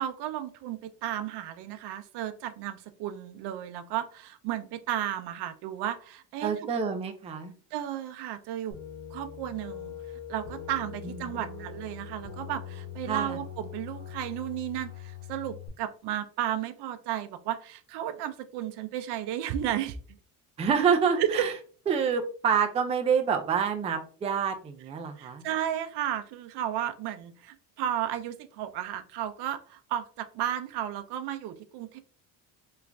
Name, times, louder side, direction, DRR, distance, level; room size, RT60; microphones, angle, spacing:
voice 1, 0.0-6.5 7.7-8.8 9.1-10.0 10.3-20.0 21.2-21.5 25.2-32.0, right 11 dB, 70° right, 10 dB, 0.6 m, -33 dB
voice 2, 6.4-7.5 11.0-11.4 13.1-13.4 20.6-21.5 21.9-25.4, right 6 dB, 15° right, 6 dB, 0.3 m, -27 dB
sound 1, 8.7-15.7, left 7 dB, 90° left, 1.4 m, -42 dB
3.1 x 2.4 x 3.3 m, 0.41 s
cardioid pair, 125°, 42 cm